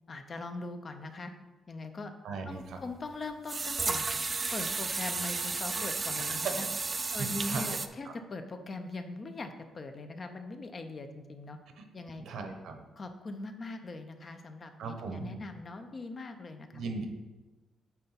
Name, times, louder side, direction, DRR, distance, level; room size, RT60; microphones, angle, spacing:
voice 1, 0.1-1.3 1.7-2.1 2.5-4.1 4.5-6.7 7.1-11.6 11.9-12.2 13.0-16.8, left 2 dB, 25° left, 7 dB, 0.5 m, -41 dB
voice 2, 2.2-2.8 7.2-8.1 11.8-11.9 12.2-12.8 14.8-15.3 16.7-17.1, right 4 dB, 65° right, 5 dB, 0.9 m, -38 dB
sound 1, 2.6-2.7 3.5-7.9, right 4 dB, 20° right, 0.3 m, -33 dB
9.0 x 3.4 x 5.7 m, 1.2 s
cardioid pair, 175°, 0 cm